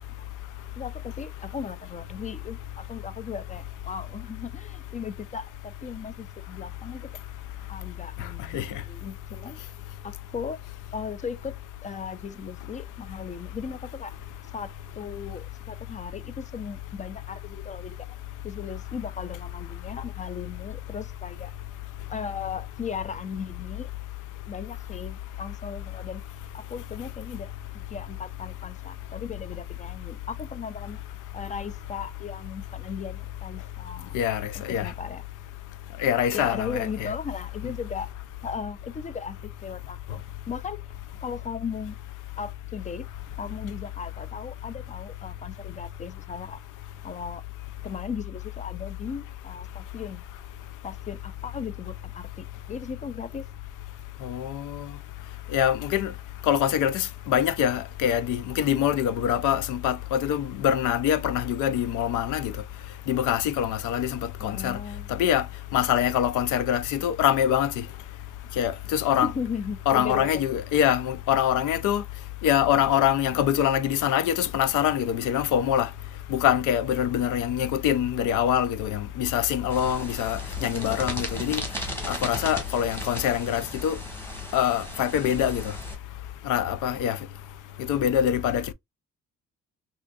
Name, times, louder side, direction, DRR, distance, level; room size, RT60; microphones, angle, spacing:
voice 1, 0.8-7.1 7.7-9.6 10.0-10.6 10.9-11.5 11.8-14.1 14.5-18.0 18.4-21.5 22.1-23.9 24.5-26.2 26.5-27.5 27.7-31.0 31.3-34.1 34.5-35.2 36.3-38.1 38.4-40.8 41.2-42.0 42.4-43.1 43.4-46.6 47.0-47.4 47.8-50.2 50.8-53.4 64.4-65.2 69.2-70.4 80.7-81.0, left 6 dB, 25° left, 0.4 m, -37 dB
voice 2, 34.1-34.9 36.0-37.1 54.2-54.9 55.5-56.1 56.4-62.5 63.1-64.8 65.1-65.5 65.7-67.8 68.6-69.3 69.9-72.0 72.4-75.9 76.3-81.6 82.0-84.0 84.5-85.7 86.5-87.2 87.8-88.7, left 10 dB, 80° left, 0.5 m, -24 dB
sound 1, 79.7-85.9, equal, 10° left, 1.3 m, -36 dB
3.6 x 2.6 x 2.3 m
cardioid pair, 90°, 30 cm